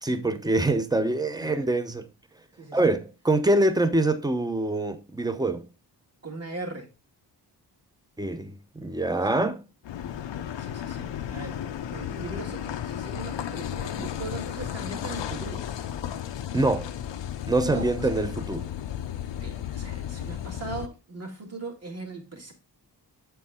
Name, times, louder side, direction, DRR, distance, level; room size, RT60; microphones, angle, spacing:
voice 1, 0.0-2.1 2.7-5.7 8.2-9.6 16.5-16.9 17.5-18.7, right 2 dB, 10° right, 0.7 m, -25 dB
voice 2, 6.2-6.9 9.3-9.4 10.6-11.6 11.9-15.6 17.6-18.4 19.4-22.5, right 3 dB, 35° right, 2.1 m, -39 dB
Car passing by / Idling / Accelerating revving vroom, 9.8-20.9, left 10 dB, 85° left, 0.6 m, -34 dB
8.0 x 4.6 x 3.6 m
wide cardioid pair, 90°, 42 cm